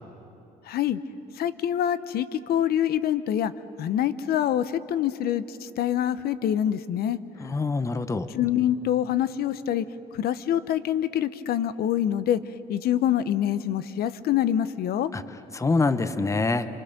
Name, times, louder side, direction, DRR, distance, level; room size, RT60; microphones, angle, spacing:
voice 1, 0.6-1.0 1.3-3.5 3.8-7.2 8.3-9.9 10.1-12.4 12.7-15.1, left 10 dB, 65° left, 13 dB, 0.9 m, -25 dB
voice 2, 7.4-8.3 15.1-15.2 15.5-16.7, left 3 dB, 20° left, 10 dB, 1.0 m, -25 dB
28.0 x 25.5 x 6.8 m, 2.8 s
cardioid pair, 110°, 17 cm